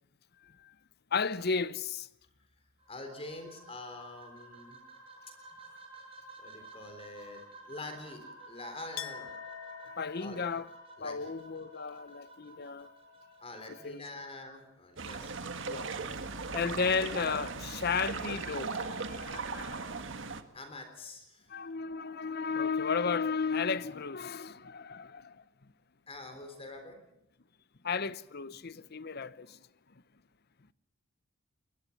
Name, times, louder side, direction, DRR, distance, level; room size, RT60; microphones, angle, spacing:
voice 1, 0.4-0.7 1.1-2.1 10.0-10.7 11.0-12.9 13.7-14.0 15.6-15.9 16.5-19.9 21.5-25.4 27.8-29.6, left 5 dB, 50° left, 0.8 m, -34 dB
sound 1, 2.8-13.8, right 2 dB, 30° right, 6.3 m, -52 dB
voice 2, 2.9-4.8 5.5-5.6 6.4-9.3 10.2-10.4 11.0-11.3 13.4-15.5 20.5-21.5 26.1-27.0, left 2 dB, 30° left, 3.7 m, -46 dB
Chink clink, 9.0-14.5 14.8-15.7, left 10 dB, 85° left, 0.8 m, -49 dB
sound 2, 15.0-20.4, right 4 dB, 65° right, 1.7 m, -38 dB
23.5 x 20.0 x 7.1 m
head